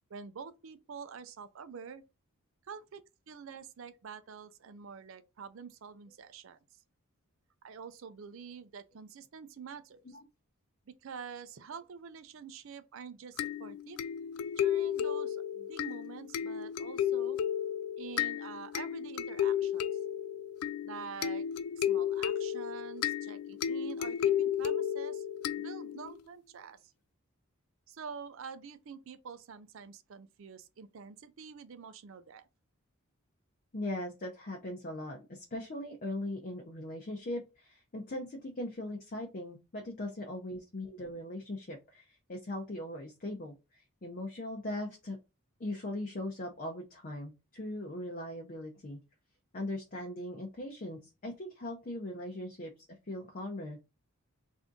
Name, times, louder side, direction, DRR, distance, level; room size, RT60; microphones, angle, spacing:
voice 1, 0.1-2.0 2.7-6.6 7.6-10.2 10.9-14.0 14.6-17.4 18.0-20.0 20.8-21.5 21.8-25.3 25.6-26.9 27.9-32.5, right 6 dB, 60° right, 0.4 m, -47 dB
sound 1, 13.4-26.1, left 9 dB, 85° left, 0.3 m, -33 dB
voice 2, 33.7-45.2 45.6-49.0 49.5-52.7 53.1-54.0, left 1 dB, 40° left, 0.6 m, -40 dB
3.5 x 2.6 x 3.7 m
head